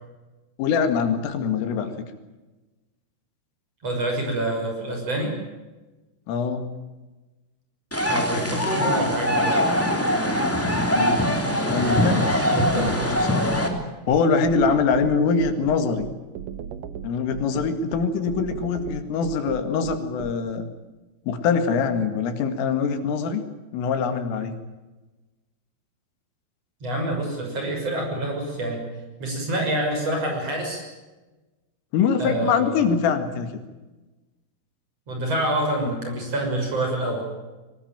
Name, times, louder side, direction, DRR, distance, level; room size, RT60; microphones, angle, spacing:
voice 1, 0.6-1.9 6.3-6.7 10.4-10.5 10.9-11.2 11.7-12.5 12.7-13.4 14.1-16.1 17.0-20.7 21.3-23.4 23.7-24.6 31.9-33.5, left 5 dB, 85° left, 8 dB, 4.6 m, -23 dB
voice 2, 3.8-5.3 8.1-9.7 12.5-12.9 26.8-28.8 29.2-30.8 32.2-32.9 35.1-37.3, right 1 dB, 30° right, 2 dB, 7.1 m, -27 dB
sound 1, 7.9-13.7, equal, 5° left, 1.8 m, -22 dB
sound 2, 12.6-20.3, right 9 dB, 85° right, 1.9 m, -35 dB
22.5 x 19.5 x 9.1 m, 1.1 s
omnidirectional pair, 5.7 m